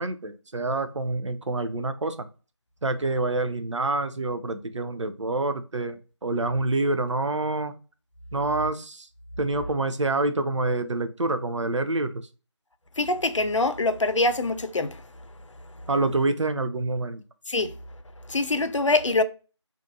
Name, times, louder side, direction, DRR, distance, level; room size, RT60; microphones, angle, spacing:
voice 1, 0.0-2.3 2.8-7.7 8.3-9.1 9.4-12.1 15.9-17.2, right 2 dB, 80° right, 0.4 m, -27 dB
voice 2, 13.0-15.0 17.5-17.7 18.3-19.2, left 2 dB, 85° left, 0.4 m, -24 dB
2.6 x 2.4 x 2.5 m
figure-of-eight pair, 175°, 15 cm